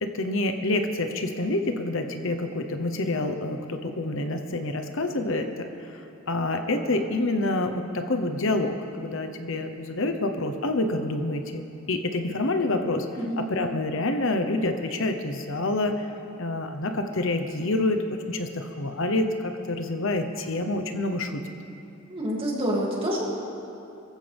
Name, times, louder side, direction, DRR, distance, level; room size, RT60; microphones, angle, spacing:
voice 1, 0.0-6.0 6.3-11.6 11.9-13.1 13.4-16.1 16.4-21.4, left 2 dB, 65° left, 6 dB, 1.0 m, -27 dB
voice 2, 13.2-13.5 22.1-23.2, equal, 25° right, -4 dB, 2.7 m, -27 dB
24.5 x 15.0 x 3.5 m, 2.8 s
head